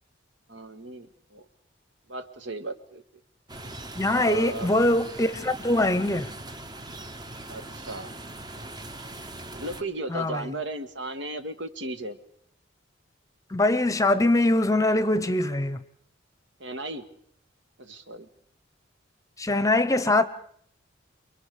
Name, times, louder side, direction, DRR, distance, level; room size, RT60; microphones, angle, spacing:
voice 1, 0.5-1.4 2.1-3.0 4.1-4.7 7.5-8.1 9.5-12.2 16.6-17.1 17.8-18.3, right 2 dB, 70° right, 1.7 m, -36 dB
sound 1, 3.5-9.8, right 1 dB, 20° right, 1.0 m, -41 dB
voice 2, 4.0-6.3 10.1-10.5 13.5-15.8 19.4-20.2, left 1 dB, 15° left, 0.9 m, -23 dB
29.0 x 23.0 x 5.1 m
head